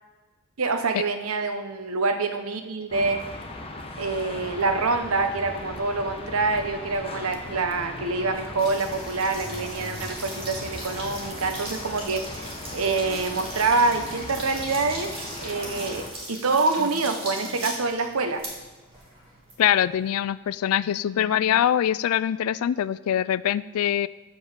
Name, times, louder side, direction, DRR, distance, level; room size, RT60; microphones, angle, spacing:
voice 1, 0.6-3.2 4.0-15.1 15.4-18.4, right 3 dB, 80° right, 7 dB, 0.9 m, -26 dB
sound 1, 2.9-16.1, left 2 dB, 25° left, 0.9 m, -38 dB
sound 2, 8.6-20.2, right 1 dB, 25° right, 2.2 m, -39 dB
voice 2, 19.6-24.1, left 10 dB, 80° left, 19 dB, 0.3 m, -23 dB
7.8 x 5.3 x 6.6 m, 1.3 s
head